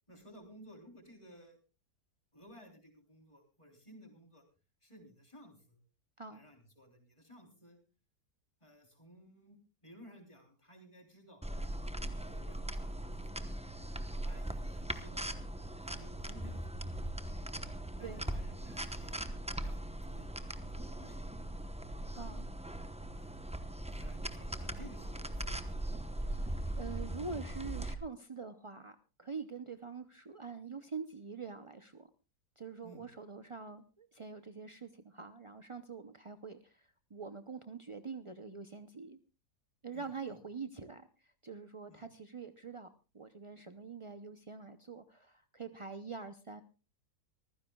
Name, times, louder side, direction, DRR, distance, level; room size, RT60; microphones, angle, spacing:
voice 1, 0.1-1.6 2.3-4.4 4.8-5.8 6.3-7.8 8.6-9.6 9.8-11.4 12.0-13.4 14.2-15.4 15.8-17.0 18.0-19.3 19.6-21.7 23.1-23.6 23.9-26.1 32.8-33.1 39.9-40.1 41.9-42.1, equal, 15° left, 3 dB, 3.5 m, -57 dB
sound 1, 11.4-27.9, right 1 dB, 5° right, 0.6 m, -40 dB
voice 2, 22.1-22.5 26.2-32.1 32.6-39.2 39.8-46.6, right 5 dB, 50° right, 9 dB, 0.3 m, -45 dB
24.5 x 15.0 x 2.3 m, 0.32 s
omnidirectional pair, 1.7 m